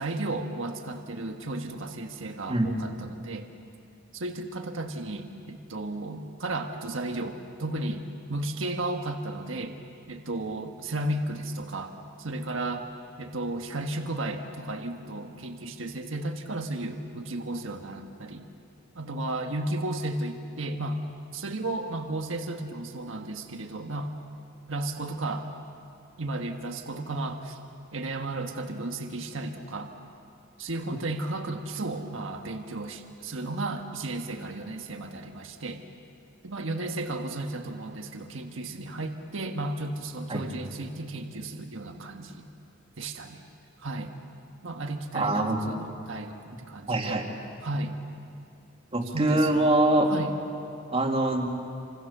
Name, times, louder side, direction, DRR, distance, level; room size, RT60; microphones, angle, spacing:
voice 1, 0.0-3.5 4.1-9.8 10.1-12.9 13.2-18.4 18.9-21.0 21.3-24.1 24.7-25.5 26.2-27.6 27.9-29.9 30.6-35.8 36.4-42.5 43.0-43.4 43.8-44.1 44.6-47.3 47.6-48.0 49.0-49.6 50.1-50.3, right 2 dB, 70° right, 4 dB, 1.6 m, -34 dB
voice 2, 2.5-2.8 40.3-40.4 45.1-45.6 46.9-47.3 48.9-50.1 50.9-51.5, right 1 dB, 30° right, 2 dB, 2.6 m, -24 dB
28.5 x 26.0 x 6.9 m, 2.6 s
head